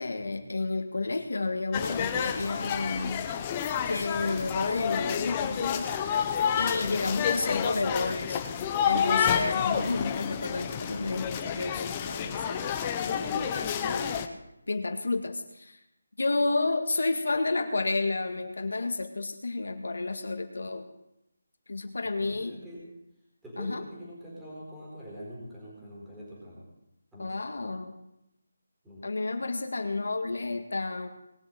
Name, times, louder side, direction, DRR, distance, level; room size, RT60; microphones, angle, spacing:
voice 1, 0.0-3.5 3.8-6.3 6.6-8.4 8.8-12.7 13.1-14.3 14.7-15.8 16.2-20.9 21.7-22.6 23.6-23.8 27.2-28.0 29.0-31.1, left 3 dB, 80° left, 5 dB, 1.8 m, -31 dB
sound 1, 1.7-14.3, left 8 dB, 20° left, 0.8 m, -29 dB
voice 2, 9.5-9.9 22.2-23.0 23.4-26.7 27.1-27.4 28.8-29.1 29.8-29.9, equal, 5° right, -7 dB, 4.2 m, -44 dB
20.0 x 6.9 x 8.9 m, 0.86 s
figure-of-eight pair, 170°, 0 cm